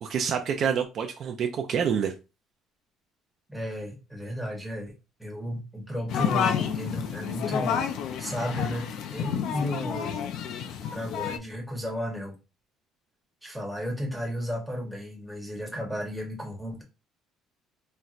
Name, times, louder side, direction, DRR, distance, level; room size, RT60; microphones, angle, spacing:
voice 1, 0.0-2.1, right 7 dB, 45° right, 0.4 m, -27 dB
voice 2, 3.5-4.9 5.2-7.9 8.2-10.2 10.9-12.4 13.4-16.8, equal, ahead, 0.9 m, -34 dB
sound 1, 6.1-11.4, left 8 dB, 60° left, 0.4 m, -30 dB
4.1 x 2.1 x 2.4 m
cardioid pair, 160°, 0 cm